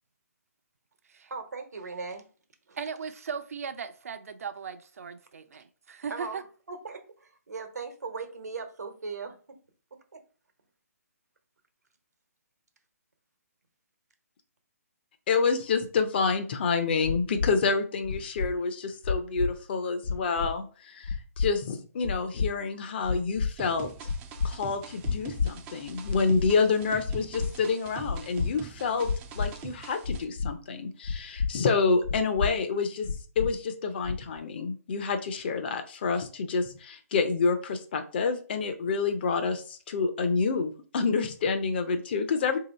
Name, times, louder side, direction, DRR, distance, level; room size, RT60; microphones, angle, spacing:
voice 1, 1.3-2.2 2.7-2.8 6.1-9.6 10.1-10.2, right 4 dB, 85° right, 1.1 m, -39 dB
voice 2, 2.8-6.4, right 6 dB, 65° right, 0.5 m, -38 dB
voice 3, 15.3-23.9 24.4-29.1 29.3-42.6, left 4 dB, 40° left, 0.6 m, -28 dB
sound 1, 17.0-17.5 18.0-18.5 19.0-19.5 20.0-20.5 21.0-21.5 22.0-22.5 23.0-23.5 24.0-24.5 25.0-25.5 26.0-26.5 27.0-27.5 28.0-28.5 29.0-29.5 30.0-30.5 31.0-31.5 32.0-32.5 33.0-33.5 34.0-34.4, left 5 dB, 75° left, 0.7 m, -29 dB
sound 2, 23.6-30.2, right 8 dB, 15° right, 0.3 m, -45 dB
3.0 x 2.8 x 4.1 m
hypercardioid pair, 155°, 9 cm